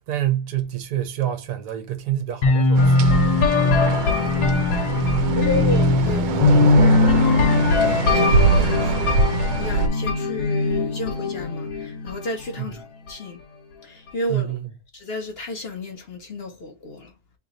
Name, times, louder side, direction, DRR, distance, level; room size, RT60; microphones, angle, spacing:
voice 1, 0.0-3.0 3.7-3.8 12.6-12.7 14.3-14.7, right 12 dB, 65° right, 1.4 m, -27 dB
sound 1, 2.4-12.2, left 3 dB, 70° left, 1.4 m, -20 dB
sound 2, 2.7-9.9, right 5 dB, 85° right, 1.3 m, -23 dB
voice 2, 3.9-4.7 5.3-7.1 7.8-12.8 13.1-13.4 13.8-14.6 14.9-17.1, left 2 dB, 50° left, 0.7 m, -32 dB
3.3 x 2.9 x 3.8 m
omnidirectional pair, 1.9 m